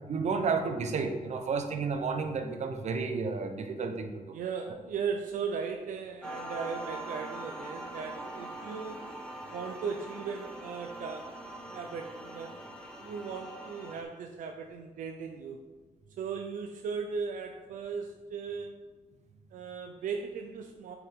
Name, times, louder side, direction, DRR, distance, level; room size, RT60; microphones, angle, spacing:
voice 1, 0.1-4.1, right 4 dB, 60° right, 6 dB, 1.0 m, -31 dB
voice 2, 4.3-9.1 9.5-11.3 11.7-15.6 16.2-18.8 19.5-20.9, right 5 dB, 85° right, 4 dB, 0.7 m, -37 dB
sound 1, 6.2-14.0, right 1 dB, 5° left, 1.5 m, -42 dB
7.9 x 7.0 x 3.7 m, 1.3 s
cardioid pair, 100°, 13 cm